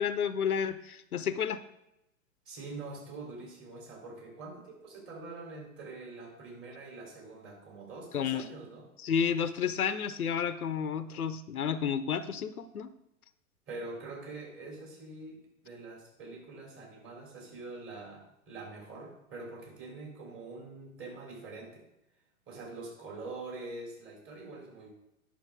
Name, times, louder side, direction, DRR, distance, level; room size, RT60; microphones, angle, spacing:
voice 1, 0.0-1.6 8.1-8.4 9.0-12.9, left 7 dB, 85° left, 13 dB, 0.7 m, -31 dB
voice 2, 2.4-8.9 13.7-21.8 22.5-24.9, right 3 dB, 30° right, -1 dB, 3.4 m, -44 dB
10.5 x 6.3 x 3.6 m, 0.86 s
figure-of-eight pair, 110°, 43 cm